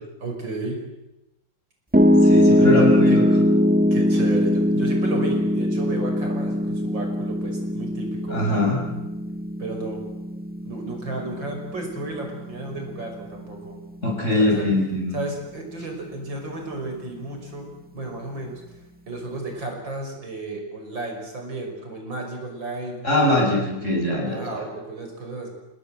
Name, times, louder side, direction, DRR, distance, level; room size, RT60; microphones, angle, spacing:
voice 1, 0.2-0.8 2.5-3.2 3.9-8.7 9.6-10.0 10.6-13.8 14.3-14.7 15.1-18.6 19.1-23.1 24.2-25.5, right 2 dB, 80° right, 2 dB, 6.4 m, -33 dB
Piano, 1.9-14.1, equal, 5° right, 1.3 m, -21 dB
voice 2, 2.2-3.2 8.3-8.8 14.0-15.2 23.0-24.4, left 1 dB, 40° left, -3 dB, 6.4 m, -22 dB
28.0 x 19.0 x 7.8 m, 0.95 s
omnidirectional pair, 2.0 m